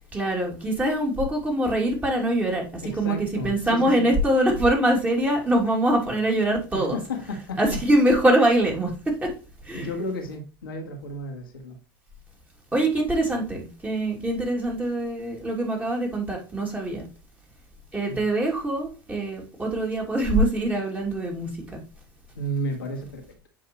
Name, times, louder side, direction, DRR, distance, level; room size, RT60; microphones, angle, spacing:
voice 1, 0.1-7.0 7.6-9.3 9.6-9.9 12.7-17.1 17.9-21.8, right 1 dB, 15° right, 2.7 m, -23 dB
voice 2, 2.8-4.1 6.7-7.8 9.7-11.8 18.1-18.3 22.4-23.5, equal, 75° left, 1.7 m, -33 dB
7.6 x 5.4 x 3.1 m
figure-of-eight pair, 75°, 12 cm